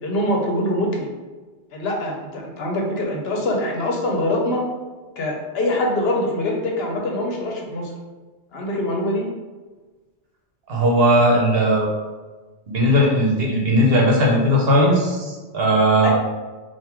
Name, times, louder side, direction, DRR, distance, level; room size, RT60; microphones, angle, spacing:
voice 1, 0.0-1.1 1.7-4.7 5.2-7.9 8.5-9.3 16.0-16.1, left 1 dB, 65° left, 0 dB, 1.0 m, -24 dB
voice 2, 10.7-11.9 12.7-16.1, equal, 60° right, -2 dB, 1.1 m, -17 dB
3.8 x 2.5 x 4.4 m, 1.3 s
omnidirectional pair, 1.2 m